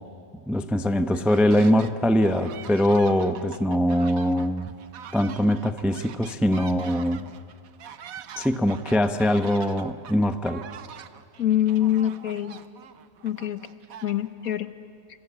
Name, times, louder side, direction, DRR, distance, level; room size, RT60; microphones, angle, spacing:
voice 1, 0.5-4.7 5.1-7.3 8.4-10.7, equal, ahead, 8 dB, 0.4 m, -22 dB
sound 1, 0.9-1.9 2.2-14.5, right 8 dB, 65° right, 1.2 m, -44 dB
voice 2, 11.4-12.6 13.2-13.6 14.0-14.7, left 11 dB, 65° left, 11 dB, 1.4 m, -24 dB
27.0 x 24.5 x 8.6 m, 2.4 s
omnidirectional pair, 1.7 m